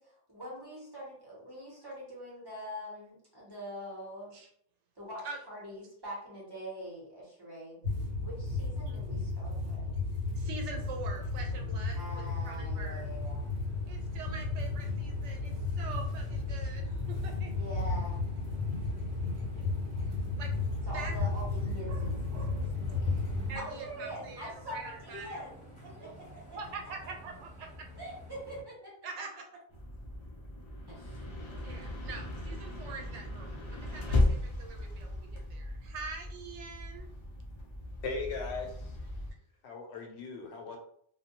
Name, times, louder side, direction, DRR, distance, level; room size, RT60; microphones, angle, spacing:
voice 1, 0.0-4.3 5.0-7.8 8.2-9.8 11.9-13.5 17.5-18.2 20.9-23.2 23.6-26.6 28.0-28.9 30.9-31.4, equal, 25° right, -6 dB, 0.9 m, -44 dB
sound 1, 7.8-23.6, left 3 dB, 55° right, 1.1 m, -34 dB
voice 2, 10.3-13.1 13.9-17.5 20.4-20.5 20.9-21.1 23.5-25.4 26.0-26.1 26.5-27.9 29.0-29.4 31.6-37.1, right 4 dB, 85° right, 2 dB, 0.9 m, -44 dB
sound 2, 10.7-28.6, right 1 dB, 5° left, 1.0 m, -49 dB
sound 3, 29.7-39.3, left 2 dB, 50° left, 0.3 m, -36 dB
voice 3, 38.0-39.0 39.6-40.8, left 4 dB, 75° left, 2 dB, 0.8 m, -38 dB
2.2 x 2.1 x 2.9 m, 0.65 s
omnidirectional pair, 1.2 m